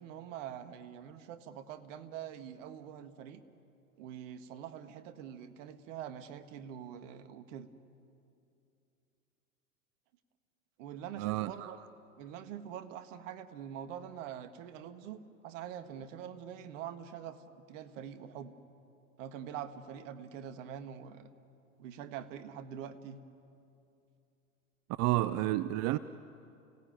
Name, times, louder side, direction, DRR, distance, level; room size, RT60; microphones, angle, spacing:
voice 1, 0.0-3.4 4.0-7.7 10.8-11.9 12.2-18.5 19.2-21.3 21.8-23.2, right 9 dB, 55° right, 10 dB, 1.7 m, -44 dB
voice 2, 11.2-11.5 25.0-26.0, right 16 dB, 35° right, 15 dB, 0.6 m, -30 dB
29.5 x 18.0 x 9.1 m, 2.6 s
hypercardioid pair, 90°, 44 cm